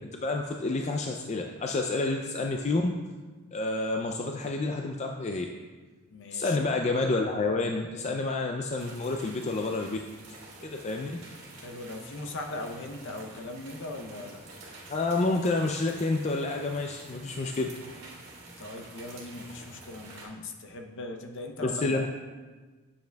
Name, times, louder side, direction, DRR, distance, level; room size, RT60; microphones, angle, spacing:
voice 1, 0.1-2.9 3.5-5.5 6.3-10.0 10.6-11.1 14.9-17.7 21.6-22.1, left 3 dB, 30° left, 2 dB, 0.3 m, -29 dB
voice 2, 6.1-6.6 11.5-14.4 18.6-22.1, left 2 dB, 55° left, 4 dB, 0.7 m, -39 dB
sound 1, 8.8-20.3, right 2 dB, 50° right, 2.0 m, -48 dB
9.0 x 7.1 x 2.3 m, 1.3 s
head